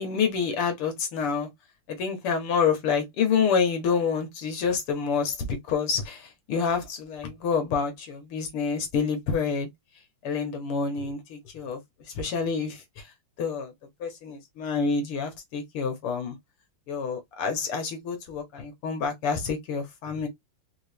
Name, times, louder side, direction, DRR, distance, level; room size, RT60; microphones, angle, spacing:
voice 1, 0.0-1.5 1.9-9.7 10.2-11.8 12.1-13.1 13.4-13.7 14.0-16.4 16.9-20.3, left 5 dB, 80° left, 2.3 m, -28 dB
5.3 x 2.6 x 3.5 m
omnidirectional pair, 2.4 m